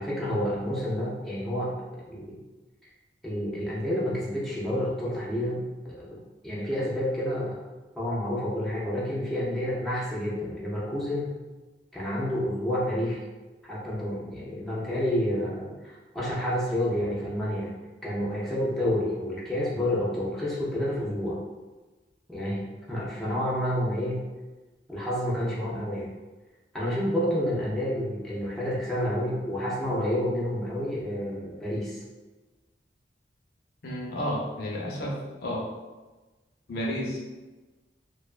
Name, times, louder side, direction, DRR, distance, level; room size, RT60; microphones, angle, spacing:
voice 1, 0.0-1.7 2.1-2.4 2.8-2.9 3.2-7.6 8.0-11.3 11.9-13.2 13.7-17.7 18.0-21.4 22.3-22.6 22.9-24.2 24.9-26.1 26.7-32.0, equal, ahead, -8 dB, 0.4 m, -29 dB
voice 2, 33.8-35.7 36.7-37.2, equal, 60° left, -3 dB, 0.5 m, -31 dB
2.4 x 2.2 x 2.3 m, 1.2 s
head